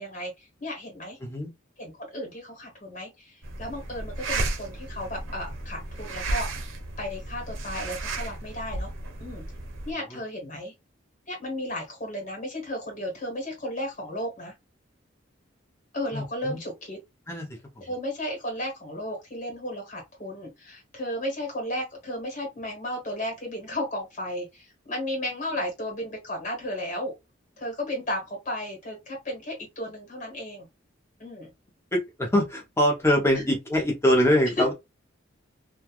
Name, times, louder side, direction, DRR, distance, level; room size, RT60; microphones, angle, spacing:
voice 1, 0.0-1.2 1.8-6.6 7.0-8.9 9.2-9.4 9.8-10.7 11.3-14.5 15.9-17.0 17.8-27.1 27.6-30.7 31.2-31.5 33.3-33.5 34.6-34.7, left 1 dB, 40° left, 1.2 m, -34 dB
sound 1, 3.4-9.9, right 2 dB, 85° right, 0.6 m, -33 dB
voice 2, 16.1-16.6 17.3-17.8 31.9-34.7, equal, 15° left, 0.7 m, -24 dB
3.1 x 2.3 x 2.3 m
head